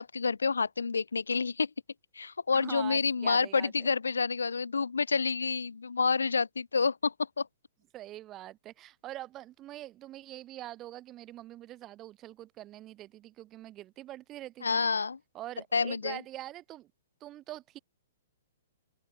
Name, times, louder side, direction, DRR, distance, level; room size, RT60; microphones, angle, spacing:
voice 1, 0.0-1.7 2.2-7.5 14.6-15.2 15.7-16.2, left 5 dB, 70° left, 0.4 m, -28 dB
voice 2, 2.5-3.7 7.9-14.9 15.3-16.9 17.2-17.8, right 14 dB, 25° right, 7.9 m, -44 dB
open air
figure-of-eight pair, 115°, 0 cm